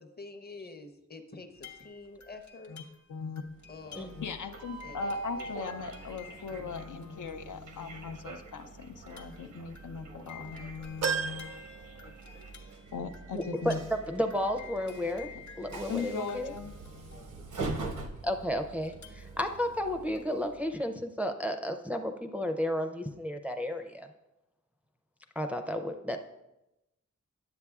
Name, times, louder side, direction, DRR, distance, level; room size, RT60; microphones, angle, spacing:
voice 1, 0.0-2.8 3.7-4.2 4.8-5.6, left 3 dB, 30° left, 6 dB, 0.7 m, -47 dB
sound 1, 1.5-7.9 8.4-8.5 9.0-18.1 18.9-20.2, left 8 dB, 70° left, 0.9 m, -53 dB
voice 2, 3.1-3.4 4.1-11.7 12.0-12.1 12.9-13.8 15.9-17.4, left 5 dB, 85° left, 7 dB, 0.5 m, -39 dB
Train, 3.5-20.8, right 3 dB, 85° right, 0.8 m, -43 dB
sound 2, 11.0-12.7 13.1-13.2 14.4-14.5, right 6 dB, 60° right, 0.5 m, -35 dB
voice 3, 13.3-15.3 15.6-16.5 18.2-24.1 25.4-26.2, equal, 5° right, 5 dB, 0.4 m, -32 dB
9.8 x 7.5 x 2.3 m, 0.94 s
wide cardioid pair, 90°, 30 cm